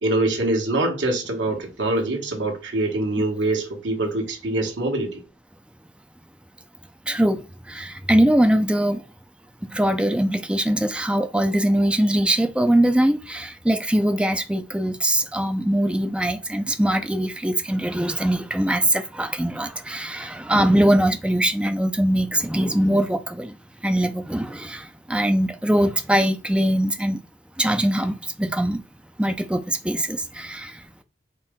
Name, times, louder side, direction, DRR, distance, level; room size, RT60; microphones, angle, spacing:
voice 1, 0.0-5.2, right 2 dB, 80° right, 1.2 m, -24 dB
voice 2, 7.1-9.0 9.7-23.6 23.8-27.2 27.6-28.8 29.2-31.0, right 1 dB, 5° right, 0.4 m, -22 dB
4.4 x 3.0 x 3.6 m
head